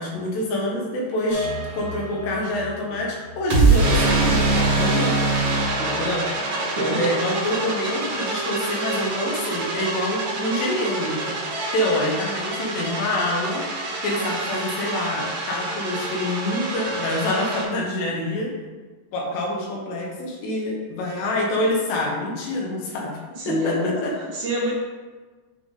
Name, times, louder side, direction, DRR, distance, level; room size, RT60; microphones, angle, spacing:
voice 1, 0.0-5.3 6.0-6.2 6.8-11.4 11.7-13.6 14.0-18.5 19.1-23.1 23.5-24.3, left 1 dB, 80° left, -2 dB, 3.3 m, -26 dB
sound 1, 1.3-17.6, right 3 dB, 50° right, 1.9 m, -25 dB
voice 2, 5.8-6.1 6.7-7.0 23.4-24.0 24.3-24.8, equal, 90° right, -4 dB, 1.7 m, -27 dB
Wind instrument woodwind instrument, 6.9-12.0, right 9 dB, 75° right, 3.0 m, -36 dB
10.0 x 3.7 x 3.7 m, 1.3 s
omnidirectional pair, 4.9 m